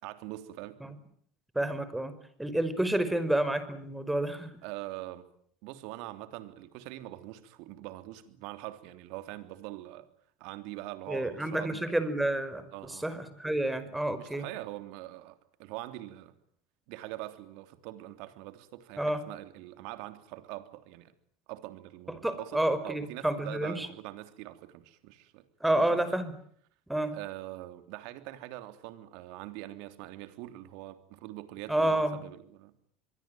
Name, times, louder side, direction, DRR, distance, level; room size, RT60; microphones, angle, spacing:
voice 1, 0.0-0.8 4.6-5.3 5.6-10.1 10.4-11.9 12.7-13.1 14.2-16.3 16.9-21.1 21.5-25.4 25.8-26.2 27.1-32.7, right 16 dB, 70° right, 10 dB, 3.2 m, -43 dB
voice 2, 1.6-2.1 2.4-4.5 11.1-14.5 19.0-19.2 22.2-23.9 25.6-26.3 26.9-27.2 31.7-32.2, right 1 dB, 5° right, 13 dB, 5.3 m, -29 dB
25.5 x 22.5 x 9.2 m, 0.64 s
hypercardioid pair, 80°, 0 cm